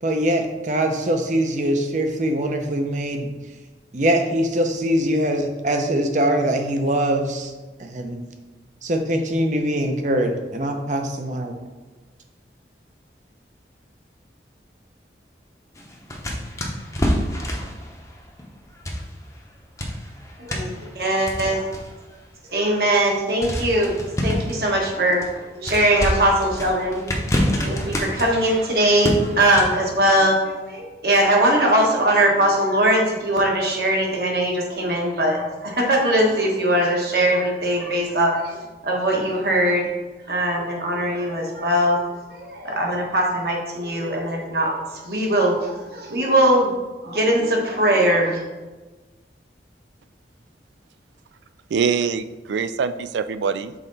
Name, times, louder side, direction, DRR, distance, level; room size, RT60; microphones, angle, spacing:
voice 1, 0.0-3.3 3.9-7.5 7.8-8.2 8.8-11.5, right 1 dB, 45° right, 5 dB, 0.7 m, -22 dB
sound 1, 15.7-19.5 19.8-22.2 22.7-22.8 23.4-29.9, equal, 15° left, 0.7 m, -28 dB
voice 2, 20.4-21.6 22.5-24.0 24.2-27.1 27.5-38.6 38.8-39.8 40.3-42.0 42.4-44.8 45.0-46.7 47.0-48.4, right 1 dB, 60° right, -1 dB, 1.4 m, -21 dB
voice 3, 51.7-53.7, right 6 dB, 80° right, 12 dB, 0.3 m, -24 dB
6.2 x 4.2 x 4.0 m, 1.2 s
head